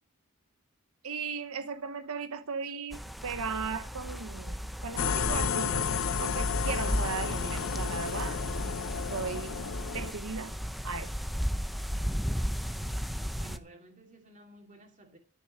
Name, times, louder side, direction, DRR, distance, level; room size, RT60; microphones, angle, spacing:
voice 1, 1.0-5.9 6.2-8.4 9.1-9.6 9.9-10.6 10.8-11.1, right 5 dB, 80° right, 0.9 m, -37 dB
sound 1, 2.9-13.6, equal, ahead, 0.6 m, -35 dB
sound 2, 5.0-10.1, left 6 dB, 65° left, 0.7 m, -31 dB
voice 2, 12.7-15.2, right 1 dB, 35° right, 2.5 m, -55 dB
13.0 x 6.9 x 8.6 m
head